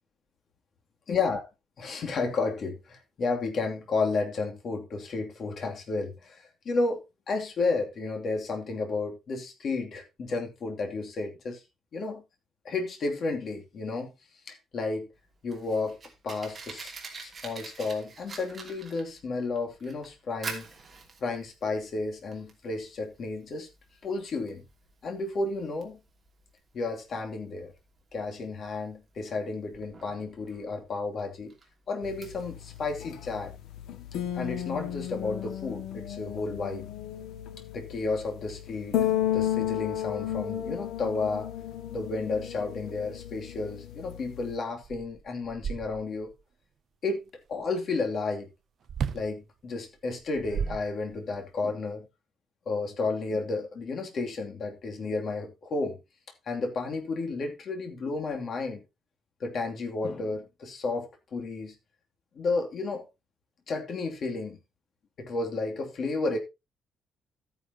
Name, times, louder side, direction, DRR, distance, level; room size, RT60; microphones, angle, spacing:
voice 1, 1.1-1.5 1.8-7.0 7.3-11.6 11.9-12.2 12.6-14.1 14.5-15.1 15.4-16.0 16.2-16.9 17.2-20.6 21.2-23.7 24.0-24.6 25.0-26.0 26.7-27.7 28.1-31.5 31.9-33.5 34.3-36.9 37.7-39.0 39.3-41.5 41.9-46.3 47.0-48.5 49.1-52.0 52.7-56.0 56.5-58.8 59.4-61.7 62.4-63.0 63.7-64.6 65.2-66.4, left 3 dB, 40° left, 2.7 m, -32 dB
Fire, 15.1-32.8, right 4 dB, 20° right, 2.8 m, -46 dB
sound 1, 32.0-44.6, left 11 dB, 80° left, 1.9 m, -33 dB
sound 2, 44.4-44.5 44.8-46.3 48.9-49.3 50.2-51.4, right 7 dB, 45° right, 0.5 m, -34 dB
13.5 x 9.6 x 2.9 m
cardioid pair, 175°, 0 cm